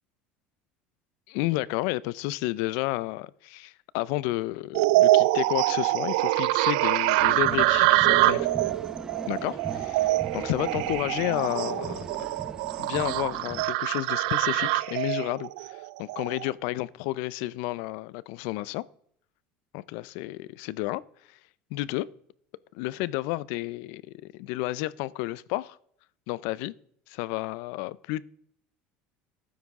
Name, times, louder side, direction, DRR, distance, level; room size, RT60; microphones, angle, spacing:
voice 1, 1.3-8.5 9.3-12.0 12.8-18.8 19.7-21.0 21.7-22.1 22.7-25.8 26.3-26.7 27.1-28.2, left 18 dB, 70° left, 0.5 m, -31 dB
sound 1, 4.7-16.5, right 18 dB, 85° right, 0.4 m, -25 dB
sound 2, 7.2-13.6, right 3 dB, 15° right, 0.7 m, -39 dB
13.0 x 9.4 x 3.6 m
cardioid pair, 150°, 4 cm